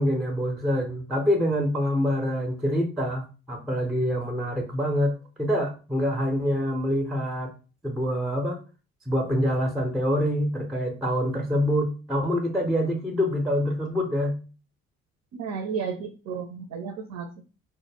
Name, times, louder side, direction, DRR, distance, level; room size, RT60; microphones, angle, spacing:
voice 1, 0.0-7.5 7.8-8.6 9.1-14.4, equal, ahead, 3 dB, 0.5 m, -26 dB
voice 2, 15.3-17.4, right 6 dB, 50° right, 6 dB, 0.5 m, -33 dB
2.1 x 2.1 x 3.3 m, 0.35 s
hypercardioid pair, 55°, 37 cm